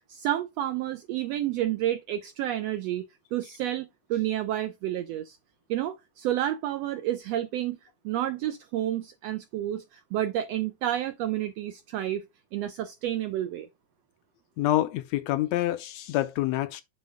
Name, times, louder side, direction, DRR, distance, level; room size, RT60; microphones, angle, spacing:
voice 1, 0.1-3.1 3.3-5.4 5.7-7.8 8.0-12.2 12.5-13.7, right 12 dB, 85° right, 1.4 m, -30 dB
voice 2, 14.6-16.8, left 15 dB, 80° left, 1.7 m, -27 dB
7.6 x 3.1 x 4.9 m
omnidirectional pair, 3.4 m